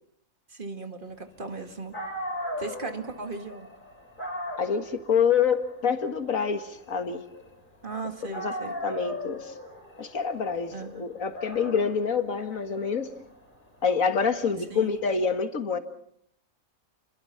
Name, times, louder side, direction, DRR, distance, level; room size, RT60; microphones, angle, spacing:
voice 1, 0.5-1.9 2.6-3.7 7.8-8.8 10.7-11.1 14.7-14.9, right 3 dB, 40° right, 7 dB, 2.1 m, -37 dB
Dog, 1.6-1.7 1.9-7.9 8.3-15.1, equal, 35° left, 4.1 m, -39 dB
voice 2, 4.6-7.2 8.3-8.5 8.8-9.5 10.0-13.1 13.8-15.8, left 6 dB, 75° left, 8 dB, 2.1 m, -26 dB
29.0 x 22.0 x 5.8 m, 0.72 s
omnidirectional pair, 1.4 m